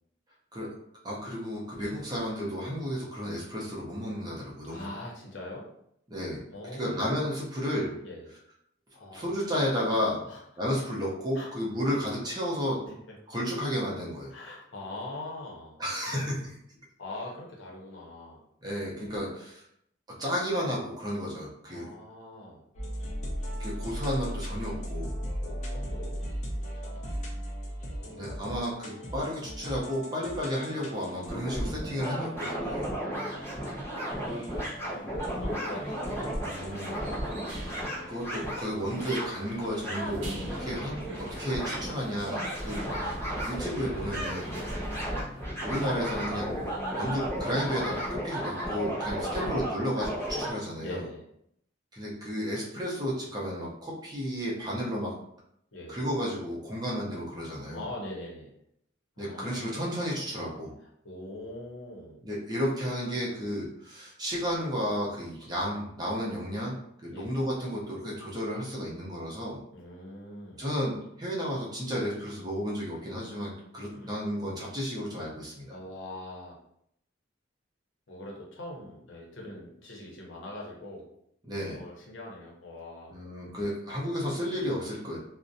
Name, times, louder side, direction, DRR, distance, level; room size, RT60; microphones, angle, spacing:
voice 1, 1.0-4.9 6.1-6.4 6.7-8.0 9.1-10.2 10.6-12.8 13.3-14.3 15.8-16.5 18.6-19.6 20.2-21.9 23.6-25.1 28.1-32.9 36.4-37.0 38.1-40.3 40.6-43.2 43.5-44.5 45.6-46.5 46.9-51.0 51.9-55.1 55.9-57.8 59.2-60.7 62.2-66.8 67.0-69.6 70.6-75.7 81.4-81.8 83.1-85.2, equal, 20° right, -5 dB, 0.6 m, -32 dB
voice 2, 4.7-5.6 6.5-7.1 8.0-8.3 8.9-9.4 10.2-10.4 11.3-11.5 12.8-12.9 14.3-15.8 17.0-18.4 21.7-22.6 25.4-26.2 26.5-27.4 27.8-28.3 29.1-29.3 30.8-31.4 32.7-33.5 34.8-37.4 40.5-40.9 44.5-44.9 49.2-49.5 50.8-51.2 55.7-56.0 57.7-58.5 59.2-59.8 60.8-62.2 67.1-67.4 69.7-70.7 73.9-74.1 75.7-76.5 78.1-81.0 81.7-83.2, left 1 dB, 70° left, -2 dB, 0.7 m, -43 dB
sound 1, 22.7-38.2, equal, 35° left, 0.5 m, -38 dB
sound 2, 31.3-50.5, equal, 15° left, 0.8 m, -34 dB
sound 3, 33.1-48.2, equal, 70° right, 0.7 m, -46 dB
2.5 x 2.1 x 2.6 m, 0.73 s
head